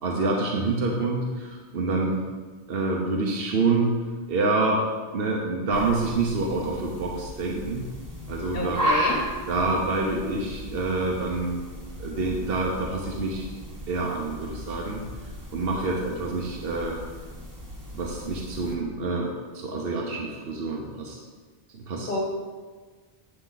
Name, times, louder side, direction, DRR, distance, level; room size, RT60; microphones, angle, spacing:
voice 1, 0.0-2.2 2.7-3.9 4.3-4.9 5.1-7.9 8.3-8.8 9.5-11.6 12.0-13.5 13.9-15.0 15.5-17.0 17.9-21.2 21.7-22.1, right 3 dB, 65° right, -1 dB, 1.1 m, -27 dB
sound 1, 5.7-18.8, equal, 20° right, 1.0 m, -35 dB
voice 2, 8.5-9.2 22.1-22.2, left 2 dB, 50° left, -1 dB, 1.5 m, -28 dB
9.0 x 6.9 x 4.0 m, 1.4 s
omnidirectional pair, 1.1 m